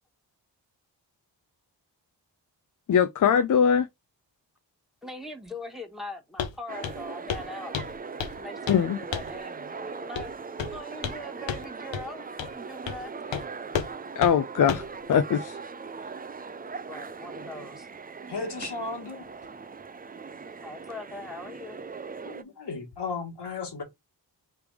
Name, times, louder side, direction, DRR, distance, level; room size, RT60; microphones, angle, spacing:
voice 1, 2.9-3.9 8.7-9.0 14.2-14.8 15.1-15.6, left 7 dB, 45° left, 0.5 m, -21 dB
voice 2, 5.0-7.8 8.4-10.3 10.7-13.4 16.8-17.9 20.6-21.8, left 1 dB, ahead, 1.5 m, -41 dB
Walk footsteps, 6.4-6.6 6.8-7.0 7.3-7.5 7.7-8.4 8.7-8.8 9.1-9.4 10.2-10.3 10.6-11.2 11.5-11.6 11.9-12.0 12.4-12.5 12.9-13.0 13.3-13.4 13.7-13.9 14.2-14.3 14.7-14.9, left 8 dB, 90° left, 0.7 m, -32 dB
sound 1, 6.7-22.4, right 5 dB, 20° right, 0.4 m, -40 dB
voice 3, 18.3-19.3 22.2-23.8, left 4 dB, 65° left, 1.7 m, -35 dB
3.4 x 3.3 x 4.8 m
cardioid pair, 50°, 43 cm